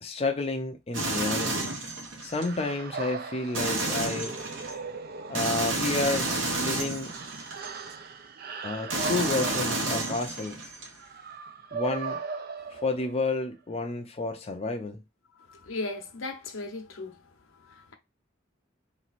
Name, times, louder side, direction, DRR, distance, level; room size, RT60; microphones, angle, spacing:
voice 1, 0.0-1.8 2.2-4.4 5.3-6.3 6.6-7.1 8.6-10.7 11.7-12.2 12.7-15.0, left 3 dB, 30° left, 0.5 m, -30 dB
sound 1, 0.9-2.5 3.5-4.7 5.4-7.9 8.9-10.9, right 2 dB, 70° right, 1.1 m, -30 dB
sound 2, 2.3-13.3, right 4 dB, 50° right, 0.5 m, -39 dB
voice 2, 15.5-17.2 17.6-17.9, left 2 dB, 90° left, 1.0 m, -37 dB
3.4 x 3.1 x 4.1 m
head